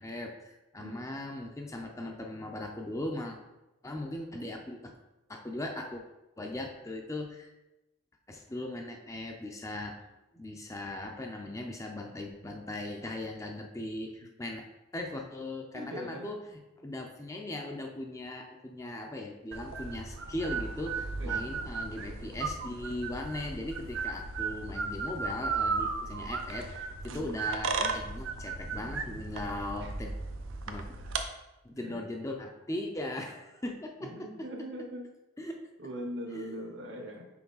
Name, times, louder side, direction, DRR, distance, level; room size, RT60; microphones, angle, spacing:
voice 1, 0.0-3.4 3.8-4.9 5.3-6.0 6.4-7.5 8.3-10.0 10.3-14.7 14.9-30.1 30.7-30.9 31.6-34.3 35.4-35.7 36.3-36.6, left 1 dB, 15° left, 2 dB, 0.5 m, -39 dB
voice 2, 15.7-16.3 21.2-21.5 27.1-27.4 29.8-29.9 31.8-32.0 34.0-35.1 35.8-37.3, equal, 60° right, 4 dB, 0.9 m, -41 dB
sound 1, 19.5-31.2, right 4 dB, 80° right, 0.6 m, -35 dB
5.9 x 4.6 x 4.0 m, 0.98 s
head